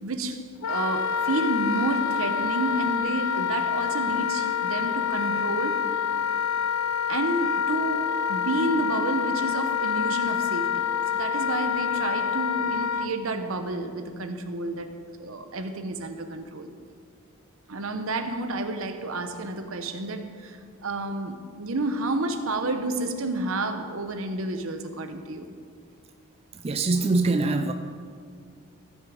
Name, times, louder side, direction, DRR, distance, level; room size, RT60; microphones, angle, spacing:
voice 1, 0.0-5.9 7.1-10.9 11.1-14.9 15.2-16.7 17.7-25.5, right 2 dB, 70° right, 8 dB, 0.9 m, -30 dB
Wind instrument woodwind instrument, 0.6-13.1, left 7 dB, 80° left, 0.4 m, -27 dB
voice 2, 26.6-27.7, right 3 dB, 25° right, 6 dB, 0.4 m, -23 dB
15.0 x 6.4 x 5.0 m, 2.1 s
head